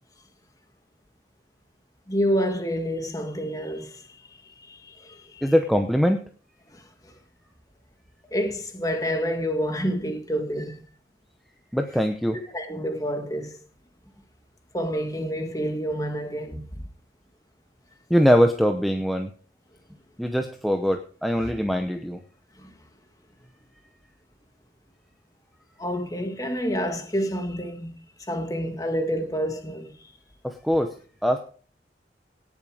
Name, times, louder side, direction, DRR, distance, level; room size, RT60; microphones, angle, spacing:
voice 1, 2.1-5.5 6.7-7.1 8.3-10.8 12.5-13.6 14.7-16.8 21.4-21.5 22.6-22.7 25.8-30.1, equal, 20° left, 1.8 m, -29 dB
voice 2, 5.4-6.2 11.7-12.4 18.1-19.3 20.2-22.2 30.4-30.9 31.2-31.4, equal, ahead, 0.7 m, -22 dB
18.0 x 7.1 x 4.9 m
head